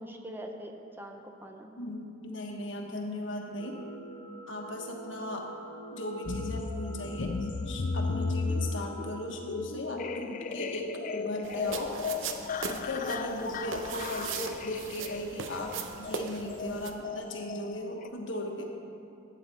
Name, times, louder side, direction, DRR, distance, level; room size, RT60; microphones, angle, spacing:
voice 1, 0.0-1.8 8.1-8.2 11.5-11.6 12.0-12.1 13.4-13.7, right 1 dB, 10° right, 3 dB, 0.6 m, -44 dB
voice 2, 1.8-3.8 4.5-5.5 5.9-11.9 12.7-18.6, left 1 dB, 75° left, 1 dB, 1.3 m, -37 dB
sound 1, 3.6-9.3, right 2 dB, 65° right, 1.1 m, -46 dB
sound 2, 6.2-18.1, left 4 dB, 45° left, 0.4 m, -35 dB
sound 3, 11.4-16.9, right 5 dB, 90° right, 0.7 m, -39 dB
12.0 x 8.6 x 4.2 m, 2.6 s
head